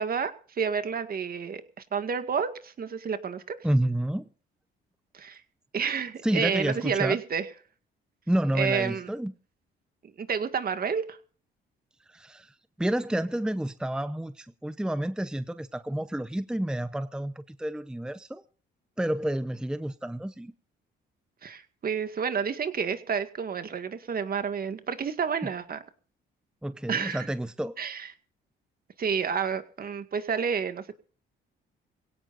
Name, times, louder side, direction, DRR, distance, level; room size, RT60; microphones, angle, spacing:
voice 1, 0.0-1.6 1.9-3.6 5.1-5.4 5.7-7.4 8.5-9.1 10.2-11.2 21.4-25.8 26.9-27.3 27.8-28.1 29.0-30.9, right 6 dB, 50° right, 2.0 m, -30 dB
voice 2, 3.6-4.3 6.2-7.2 8.3-9.3 12.1-18.4 19.0-20.5 26.6-27.8, right 1 dB, 5° right, 0.8 m, -29 dB
23.0 x 17.0 x 2.6 m
cardioid pair, 90°, 20 cm